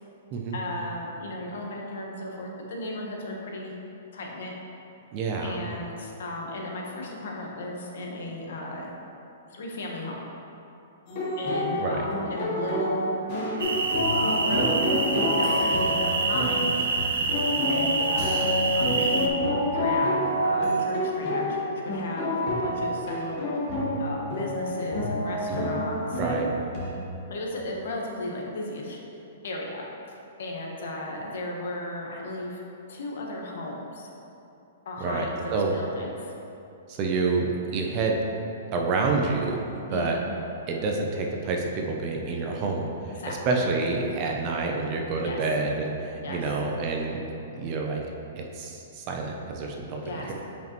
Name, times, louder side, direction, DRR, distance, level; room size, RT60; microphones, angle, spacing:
voice 1, 0.5-3.7 4.1-4.6 5.4-8.9 9.5-10.3 11.4-13.2 14.1-14.9 15.4-16.9 17.7-19.3 19.7-23.5 24.0-26.6 27.3-29.0 29.4-29.8 30.4-34.1 34.8-36.3 39.9-40.2 43.1-43.6 45.2-45.4 46.2-46.5 50.0-50.3, left 1 dB, 60° left, -1 dB, 1.1 m, -35 dB
voice 2, 5.1-5.6 11.8-12.0 25.6-25.7 26.2-26.5 35.0-35.7 36.9-38.2 38.7-39.6 39.9-40.2 40.7-47.2 47.6-48.0 48.4-50.3, right 3 dB, 25° right, 1 dB, 0.5 m, -28 dB
sound 1, 11.1-27.0, equal, 35° left, 1.1 m, -28 dB
sound 2, 13.6-19.3, right 3 dB, 75° right, 0.6 m, -27 dB
7.6 x 5.2 x 3.0 m, 2.9 s
hypercardioid pair, 175°, 0 cm